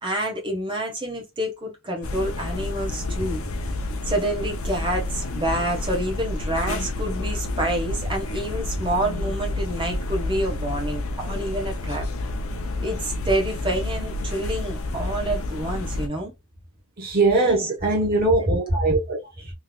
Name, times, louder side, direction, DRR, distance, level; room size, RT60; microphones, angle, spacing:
voice 1, 0.0-3.4 4.0-12.0 12.8-16.3, right 1 dB, 25° right, 1.4 m, -28 dB
sound 1, 2.0-16.1, left 2 dB, 75° left, 0.7 m, -29 dB
voice 2, 17.0-19.5, right 2 dB, 45° right, 0.9 m, -22 dB
3.5 x 3.0 x 2.3 m
head